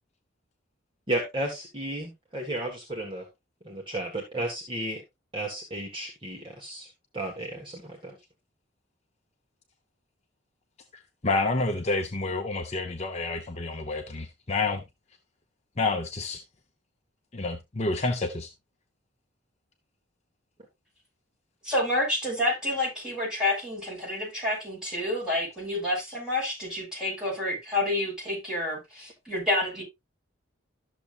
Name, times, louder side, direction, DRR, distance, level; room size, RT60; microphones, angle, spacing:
voice 1, 1.1-3.3 3.6-5.0 5.3-6.9 7.1-8.2, right 1 dB, 25° right, 1.6 m, -33 dB
voice 2, 11.2-14.8 15.8-16.4 17.3-18.5, left 3 dB, 35° left, 0.8 m, -29 dB
voice 3, 21.6-29.8, left 1 dB, 5° right, 5.9 m, -29 dB
12.5 x 6.9 x 2.5 m
head